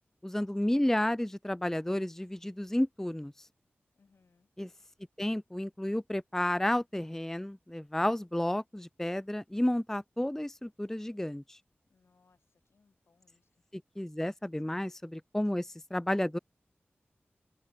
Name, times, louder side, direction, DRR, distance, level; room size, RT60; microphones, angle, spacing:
voice 1, 0.2-3.5 4.6-4.7 5.2-11.6 14.0-16.4, left 1 dB, 10° left, 0.4 m, -31 dB
voice 2, 4.0-4.5 11.9-13.5, left 4 dB, 75° left, 7.7 m, -69 dB
cardioid pair, 45°, 4 cm